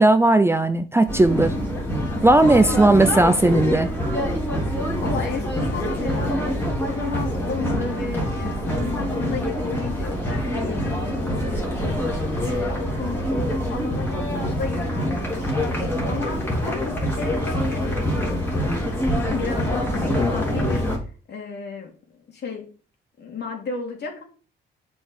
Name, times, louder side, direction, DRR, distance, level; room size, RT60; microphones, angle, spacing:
voice 1, 0.0-1.5 2.2-3.9, right 2 dB, 10° right, 0.5 m, -16 dB
sound 1, 1.1-21.0, equal, 10° left, 3.2 m, -25 dB
voice 2, 2.5-2.8 5.0-6.6 6.9-12.0 12.4-15.8 16.1-18.5 19.3-20.9 21.3-22.7 23.2-24.2, left 4 dB, 60° left, 2.8 m, -33 dB
7.0 x 4.8 x 5.2 m
cardioid pair, 90°, 20 cm